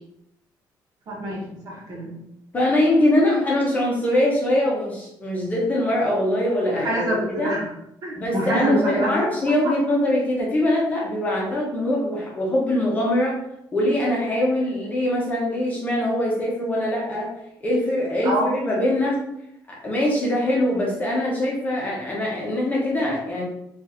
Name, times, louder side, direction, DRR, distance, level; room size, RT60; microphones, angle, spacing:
voice 1, 1.1-2.1 6.7-7.7 8.0-9.1 18.2-18.5, right 1 dB, 55° right, -4 dB, 1.1 m, -25 dB
voice 2, 2.5-7.6 8.2-13.3 13.7-17.3 17.6-19.2 19.7-23.4, left 1 dB, 20° left, -4 dB, 0.9 m, -22 dB
4.5 x 2.5 x 2.7 m, 0.80 s
cardioid pair, 155°, 8 cm